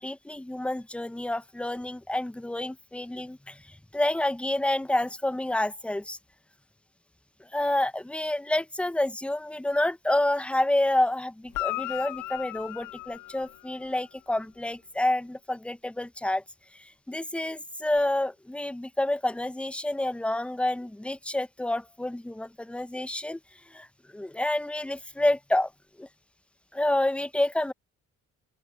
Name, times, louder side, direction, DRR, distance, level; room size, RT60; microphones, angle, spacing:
voice 1, 0.0-6.2 7.5-16.4 16.7-23.4 23.7-23.9 24.1-25.7 26.0-26.1 26.7-27.7, left 1 dB, 5° left, 0.5 m, -28 dB
Guitar, 11.5-14.1 17.9-18.0, left 19 dB, 80° left, 0.5 m, -36 dB
open air
cardioid pair, 90°, 30 cm